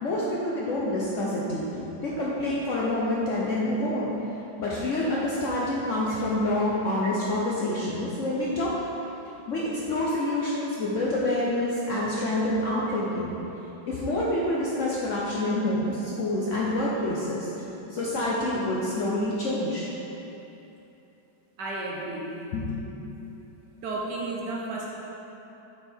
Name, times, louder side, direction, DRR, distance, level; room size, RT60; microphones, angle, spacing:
voice 1, 0.0-4.1 4.6-8.7 9.5-13.3 13.8-17.6 17.9-19.9 22.5-23.0, left 1 dB, 70° left, -5 dB, 0.7 m, -27 dB
voice 2, 21.6-22.4 22.8-22.9 23.8-24.9, right 2 dB, 70° right, -3 dB, 1.3 m, -33 dB
6.9 x 3.4 x 4.4 m, 3.0 s
omnidirectional pair, 2.0 m